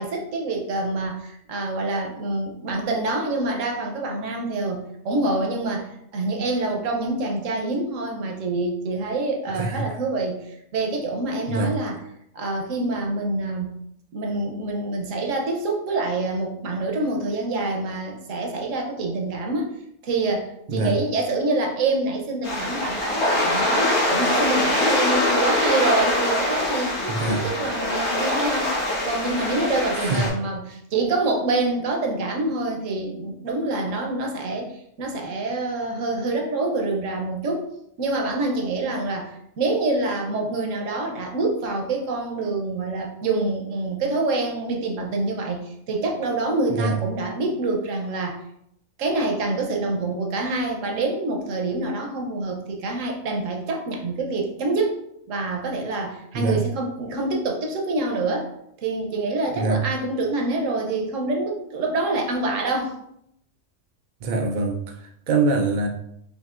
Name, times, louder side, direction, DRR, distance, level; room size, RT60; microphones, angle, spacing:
voice 1, 0.0-12.0 12.3-13.8 14.1-19.7 20.0-27.0 27.3-37.7 38.0-48.4 49.0-54.9 55.3-58.5 58.8-63.0, right 2 dB, 65° right, 1 dB, 1.1 m, -26 dB
voice 2, 9.5-9.9 11.5-11.8 20.7-21.0 27.1-27.4 29.9-30.2 46.7-46.9 56.3-56.6 59.6-59.8 64.2-65.9, right 3 dB, 85° right, 3 dB, 0.4 m, -24 dB
sound 1, 22.4-30.3, left 1 dB, 80° left, 1.8 m, -23 dB
5.5 x 2.8 x 2.4 m, 0.75 s
omnidirectional pair, 1.5 m